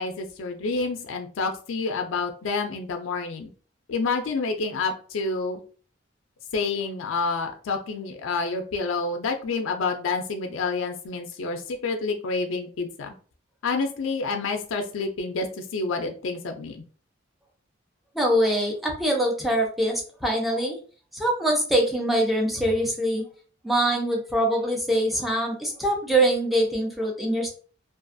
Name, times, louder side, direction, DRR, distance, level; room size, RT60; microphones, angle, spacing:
voice 1, 0.0-3.5 3.9-5.6 6.5-13.1 13.6-16.8, left 4 dB, 85° left, 5 dB, 0.4 m, -28 dB
voice 2, 18.1-20.8 21.1-23.2 23.6-27.5, right 1 dB, ahead, 0 dB, 0.5 m, -23 dB
2.4 x 2.3 x 2.5 m, 0.40 s
head